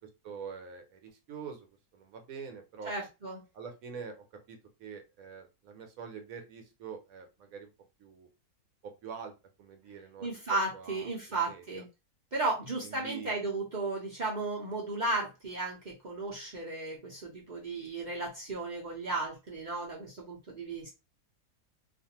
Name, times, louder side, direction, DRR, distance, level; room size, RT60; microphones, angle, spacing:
voice 1, 0.2-1.7 1.9-2.9 3.5-7.7 8.0-8.3 8.8-9.3 9.6-10.3 10.7-11.8 12.8-13.3, right 6 dB, 70° right, 5 dB, 1.1 m, -45 dB
voice 2, 2.8-3.4 10.2-11.9 12.3-20.9, right 2 dB, 50° right, -3 dB, 0.5 m, -34 dB
2.5 x 2.4 x 2.8 m, 0.26 s
omnidirectional pair, 1.6 m